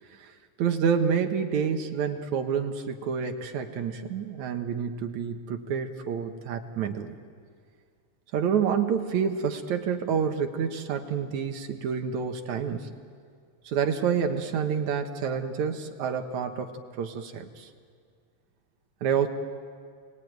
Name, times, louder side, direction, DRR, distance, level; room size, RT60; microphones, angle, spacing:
voice 1, 0.6-7.1 8.3-12.9 13.6-17.7 19.0-19.3, right 7 dB, 75° right, 6 dB, 2.7 m, -28 dB
29.0 x 20.5 x 9.4 m, 2.1 s
omnidirectional pair, 3.4 m